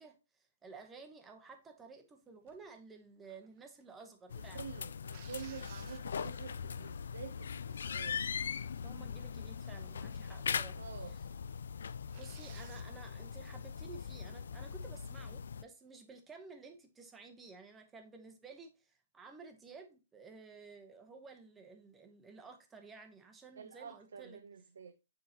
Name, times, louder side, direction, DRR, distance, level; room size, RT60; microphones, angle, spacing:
voice 1, 0.0-4.6 8.8-10.8 11.1-11.2 12.1-24.4, right 4 dB, 10° right, 0.9 m, -53 dB
sound 1, 2.5-2.7 3.2-4.1 5.1-6.4 7.0-7.1 7.5-7.9 8.2-9.1 9.6-9.9 10.2-10.3 10.9-11.0 11.3-11.4 12.1-12.9 15.2-15.6, right 8 dB, 40° right, 0.9 m, -59 dB
sound 2, 4.3-15.6, left 6 dB, 85° left, 0.3 m, -41 dB
voice 2, 4.4-8.4 10.7-11.2 23.6-24.9, right 7 dB, 90° right, 0.6 m, -48 dB
9.3 x 3.7 x 2.9 m
hypercardioid pair, 160°, 0 cm